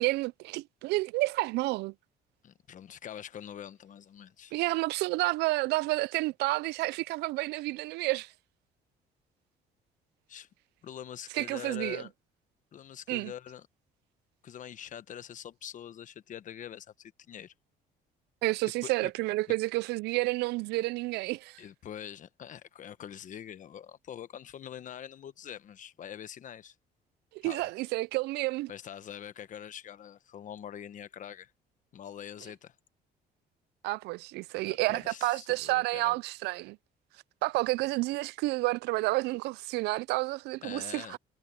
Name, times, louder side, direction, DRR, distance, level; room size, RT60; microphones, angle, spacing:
voice 1, 0.0-1.9 4.5-8.3 11.3-12.0 13.1-13.3 18.4-21.6 27.3-28.7 33.8-36.8 37.4-41.2, right 21 dB, 85° right, 0.4 m, -30 dB
voice 2, 2.4-4.5 10.3-10.5 10.8-12.1 12.7-13.7 14.4-17.5 18.8-19.1 21.6-26.7 27.4-27.7 28.7-31.5 31.9-32.7 34.9-36.2 40.6-41.2, left 9 dB, 50° left, 1.2 m, -44 dB
cardioid pair, 110°, 17 cm